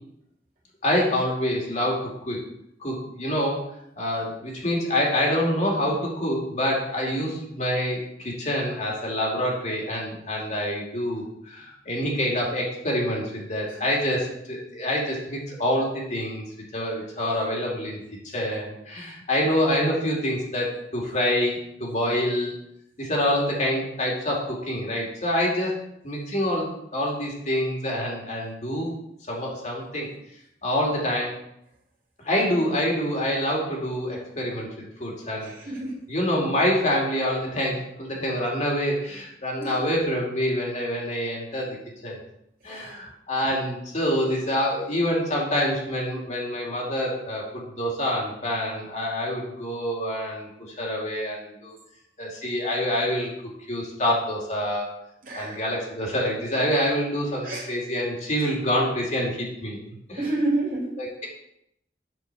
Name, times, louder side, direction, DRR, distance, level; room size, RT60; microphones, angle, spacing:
voice 1, 0.8-2.4 2.8-3.6 4.0-16.4 16.7-18.0 18.3-22.5 23.0-25.7 26.0-28.9 29.3-30.1 30.6-31.4 32.2-34.7 35.0-35.5 36.1-41.8 42.0-42.2 42.6-50.5 50.8-51.8 52.2-53.3 53.7-55.0 55.3-59.8 60.1-60.2 61.0-61.3, equal, 40° left, -2 dB, 2.5 m, -26 dB
voice 2, 35.4-35.9 39.6-39.7 42.7-42.8 55.2-55.6 57.4-57.7 60.2-60.9, right 2 dB, 50° right, -3 dB, 2.8 m, -28 dB
8.0 x 4.8 x 6.7 m, 0.77 s
head